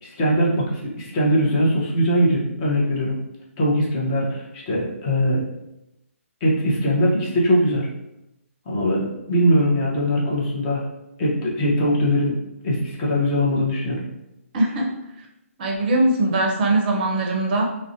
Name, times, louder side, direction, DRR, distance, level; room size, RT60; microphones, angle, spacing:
voice 1, 0.0-3.2 3.6-5.4 6.4-7.9 8.7-10.8 11.2-12.4 12.6-14.0, equal, 25° left, -5 dB, 0.7 m, -21 dB
voice 2, 14.5-14.9 15.6-17.6, right 2 dB, 40° right, 1 dB, 0.5 m, -21 dB
2.4 x 2.1 x 2.5 m, 0.88 s
hypercardioid pair, 150°, 8 cm